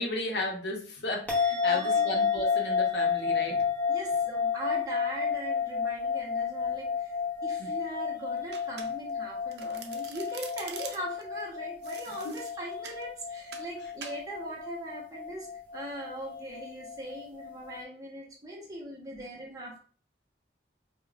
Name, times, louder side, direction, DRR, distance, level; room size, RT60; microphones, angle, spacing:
voice 1, 0.0-3.7 7.6-7.7 12.1-12.4 19.1-19.2, left 1 dB, 80° left, 1 dB, 0.7 m, -34 dB
sound 1, 1.3-17.8, left 6 dB, 10° left, 0.8 m, -31 dB
voice 2, 1.7-2.2 3.9-7.1 7.4-15.5 15.7-19.8, right 1 dB, 20° right, -3 dB, 0.9 m, -40 dB
Domestic sounds home sounds, 8.5-9.2 9.5-11.2 11.8-13.0 13.5-13.7 14.0-14.2, right 6 dB, 70° right, 0.4 m, -44 dB
4.8 x 2.1 x 2.4 m, 0.43 s
head